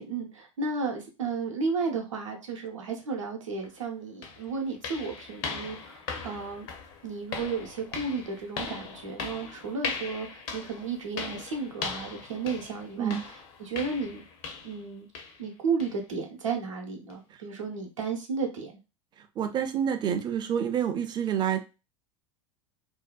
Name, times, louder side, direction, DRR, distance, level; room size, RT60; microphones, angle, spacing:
voice 1, 0.0-6.7 7.0-14.2 14.6-15.1 15.4-18.8, right 4 dB, 75° right, 2 dB, 0.7 m, -33 dB
sound 1, 3.6-3.7 4.2-14.9 15.1-15.4 15.8-16.0 16.5-16.6 17.1-17.2, left 5 dB, 50° left, 0.6 m, -39 dB
voice 2, 19.4-21.6, right 9 dB, 25° right, 8 dB, 0.4 m, -28 dB
2.7 x 2.1 x 2.3 m, 0.29 s
figure-of-eight pair, 80°, 16 cm